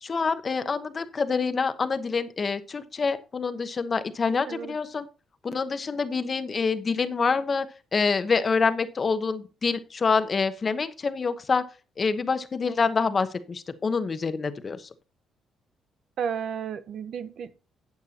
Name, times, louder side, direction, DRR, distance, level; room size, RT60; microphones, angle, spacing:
voice 1, 0.0-5.1 5.4-7.7 7.9-11.6 12.0-14.9, left 5 dB, 40° left, 1.0 m, -26 dB
voice 2, 4.5-4.8 16.2-17.6, right 7 dB, 65° right, 0.8 m, -33 dB
12.0 x 8.2 x 2.9 m
cardioid pair, 90°, 0 cm